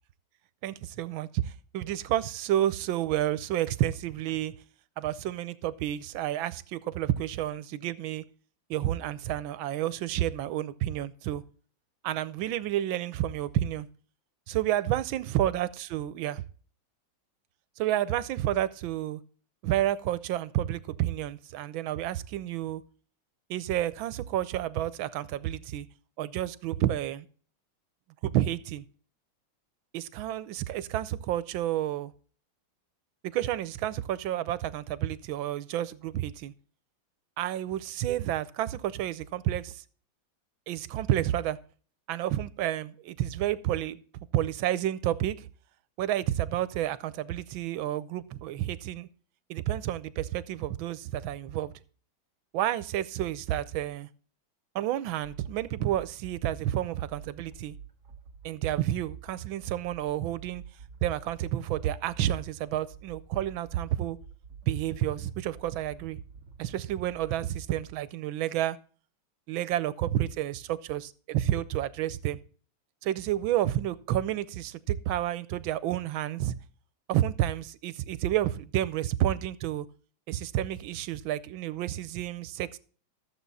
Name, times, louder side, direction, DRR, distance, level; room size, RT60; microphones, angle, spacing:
voice 1, 0.6-4.5 5.0-8.2 8.7-11.4 12.0-13.9 14.5-16.4 17.8-19.2 19.6-22.8 23.5-25.9 26.2-27.3 28.2-28.8 29.9-32.1 33.3-36.5 37.4-39.8 40.7-41.6 42.1-44.0 44.3-45.5 46.0-49.1 49.5-51.7 52.5-54.1 54.7-57.7 58.4-60.6 61.0-64.2 64.6-66.2 66.6-68.8 69.5-72.4 73.0-76.6 77.1-79.9 80.3-82.8, right 12 dB, 80° right, 1.5 m, -30 dB
sound 1, 55.2-67.6, right 6 dB, 50° right, 2.3 m, -50 dB
13.5 x 7.6 x 4.1 m
omnidirectional pair, 2.1 m